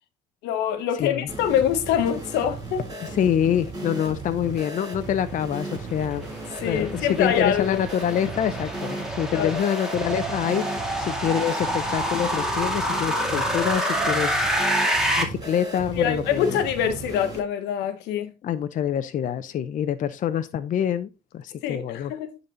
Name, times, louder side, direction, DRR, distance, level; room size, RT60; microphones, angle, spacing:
voice 1, 0.4-2.8 6.6-7.8 9.3-9.6 16.0-18.3 21.6-22.4, left 9 dB, 90° left, 1.2 m, -25 dB
sound 1, 1.3-17.4, right 3 dB, 25° right, 5.5 m, -36 dB
voice 2, 3.0-6.4 6.7-10.6 11.0-16.6 18.4-22.1, left 9 dB, 50° left, 0.6 m, -26 dB
sound 2, 5.7-15.2, equal, 5° right, 2.2 m, -27 dB
10.0 x 4.1 x 3.9 m
cardioid pair, 110°, 17 cm